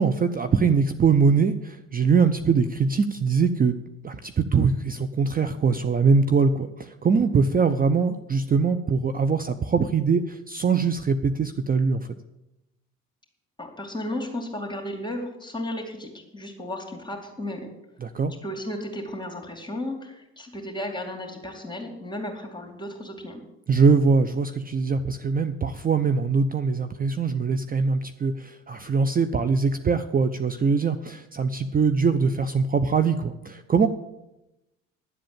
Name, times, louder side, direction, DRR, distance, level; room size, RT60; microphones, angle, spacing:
voice 1, 0.0-3.8 4.0-12.0 18.0-18.3 23.7-33.9, right 5 dB, 20° right, 9 dB, 0.7 m, -22 dB
voice 2, 13.6-17.7 18.4-23.4, left 1 dB, 10° left, 2 dB, 2.5 m, -34 dB
11.0 x 7.6 x 8.8 m, 0.90 s
figure-of-eight pair, 55°, 40 cm